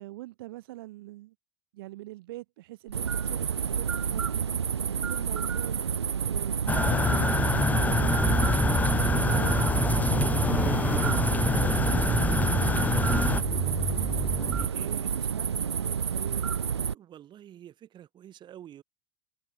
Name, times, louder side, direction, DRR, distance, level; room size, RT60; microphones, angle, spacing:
voice 1, 0.0-1.3 1.7-4.6 4.9-5.8 6.2-11.1 11.4-13.1 14.8-16.6, right 17 dB, 60° right, 2.8 m, -43 dB
sound 1, 2.9-16.9, right 7 dB, 80° right, 0.7 m, -29 dB
sound 2, 6.7-13.4, left 4 dB, 10° left, 0.8 m, -26 dB
sound 3, 7.5-14.6, right 3 dB, 10° right, 1.1 m, -32 dB
voice 2, 14.5-15.1 16.9-18.8, right 11 dB, 35° right, 7.5 m, -48 dB
figure-of-eight pair, 80°, 14 cm